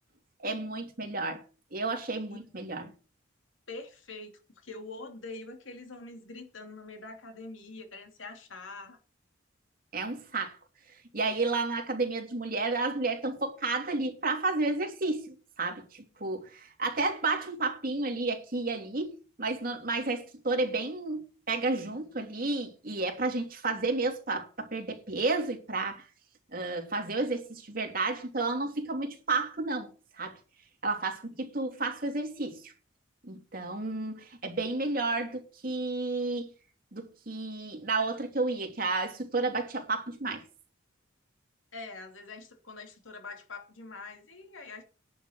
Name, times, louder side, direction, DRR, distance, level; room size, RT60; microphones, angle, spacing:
voice 1, 0.4-1.4 1.7-2.9 9.9-10.6 11.1-26.0 26.5-29.9 30.2-30.4 30.8-32.7 33.2-36.5 36.9-40.4, right 3 dB, 45° right, 2.9 m, -31 dB
voice 2, 3.7-9.0 41.7-44.8, left 3 dB, 85° left, 2.9 m, -44 dB
11.0 x 6.5 x 8.1 m
head